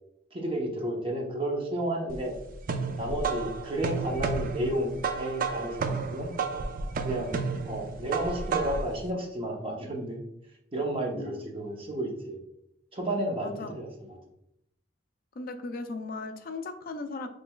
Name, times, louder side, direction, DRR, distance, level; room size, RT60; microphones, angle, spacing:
voice 1, 0.3-2.3 3.0-6.3 7.0-7.3 7.6-10.2 10.7-12.4 12.9-14.2, right 1 dB, 30° right, 0 dB, 0.8 m, -32 dB
sound 1, 2.1-9.0, right 4 dB, 45° right, 0.4 m, -32 dB
voice 2, 11.1-11.4 13.4-13.7 15.4-17.3, left 3 dB, 50° left, 7 dB, 0.4 m, -37 dB
6.4 x 3.2 x 2.3 m, 0.79 s
head